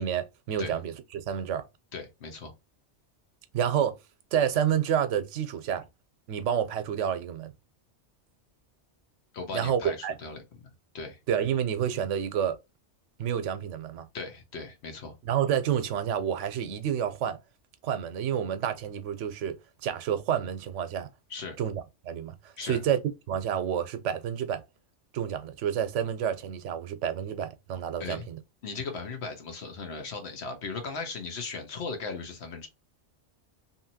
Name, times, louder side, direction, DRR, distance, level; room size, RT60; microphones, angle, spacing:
voice 1, 0.0-1.6 3.5-3.9 4.3-5.9 6.3-7.5 9.5-10.1 11.3-12.6 13.2-14.1 15.2-17.4 17.8-19.6 19.8-21.1 21.6-23.0 23.3-24.6 25.1-28.4, right 9 dB, 90° right, 0.9 m, -29 dB
voice 2, 1.9-2.5 9.3-10.4 10.9-11.2 14.1-15.1 21.3-21.6 22.6-22.8 28.0-28.2 28.6-32.7, left 4 dB, 65° left, 1.1 m, -37 dB
2.8 x 2.7 x 2.7 m
omnidirectional pair, 1.2 m